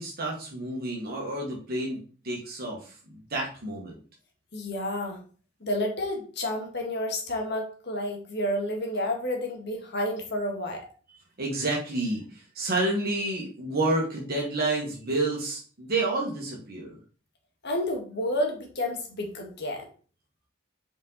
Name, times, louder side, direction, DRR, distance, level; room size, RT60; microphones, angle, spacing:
voice 1, 0.0-4.0 11.4-17.0, right 2 dB, 50° right, -2 dB, 1.7 m, -29 dB
voice 2, 4.5-5.2 5.6-10.8 17.6-19.9, left 1 dB, 60° left, 2 dB, 1.7 m, -30 dB
5.3 x 4.8 x 4.0 m, 0.40 s
head